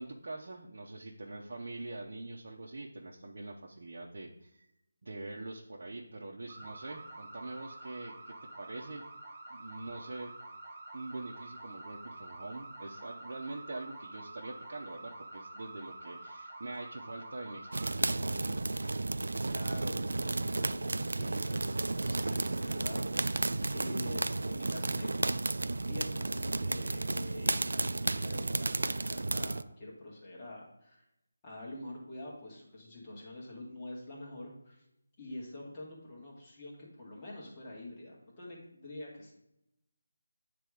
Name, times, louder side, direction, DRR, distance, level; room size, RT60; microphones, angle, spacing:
voice 1, 0.0-4.7 5.0-9.0 9.5-10.3 10.9-18.4, right 2 dB, 55° right, -2 dB, 0.8 m, -44 dB
sound 1, 6.5-17.9, right 2 dB, 25° right, 1.1 m, -48 dB
sound 2, 17.7-29.6, right 2 dB, 75° right, 0.3 m, -33 dB
voice 2, 19.5-23.4 23.7-25.1 25.9-31.0 31.4-34.8 35.2-39.3, left 1 dB, 20° left, -5 dB, 1.9 m, -46 dB
9.0 x 3.4 x 4.9 m, 0.84 s
figure-of-eight pair, 170°, 0 cm